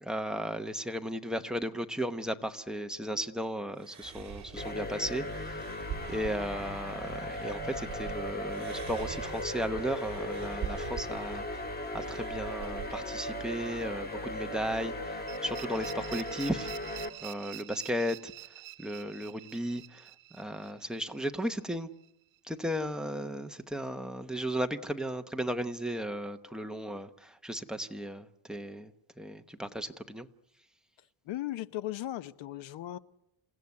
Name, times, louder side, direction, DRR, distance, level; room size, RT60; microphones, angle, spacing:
voice 1, 0.0-5.7 6.1-11.7 11.9-16.7 17.2-18.3 18.8-20.0 20.3-21.9 22.5-28.9 29.2-30.3, equal, ahead, 11 dB, 0.9 m, -35 dB
sound 1, 3.8-8.1 8.5-13.0, right 8 dB, 35° right, 3.1 m, -44 dB
sound 2, 4.6-17.1, left 1 dB, 20° left, 1.7 m, -37 dB
sound 3, 15.3-22.1, right 16 dB, 70° right, 1.0 m, -47 dB
voice 2, 31.2-33.0, left 14 dB, 65° left, 16 dB, 1.0 m, -37 dB
28.0 x 16.0 x 9.6 m, 0.83 s
cardioid pair, 155°, 49 cm